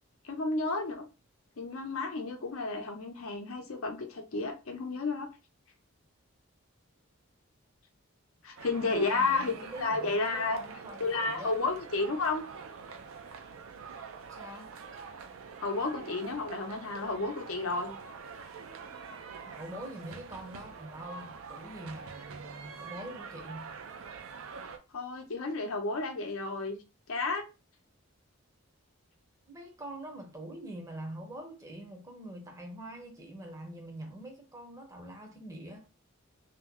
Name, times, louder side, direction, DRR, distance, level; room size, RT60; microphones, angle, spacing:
voice 1, 0.2-1.0 1.6-5.3 8.4-10.6 11.0-12.4 15.6-17.9 24.9-26.8 27.1-27.5, left 3 dB, 75° left, 0.7 m, -32 dB
sound 1, 8.6-24.8, right 5 dB, 70° right, 0.4 m, -45 dB
voice 2, 8.9-11.6 14.3-14.7 19.5-23.8 29.5-35.9, right 1 dB, 15° right, 0.6 m, -44 dB
2.9 x 2.1 x 3.5 m
head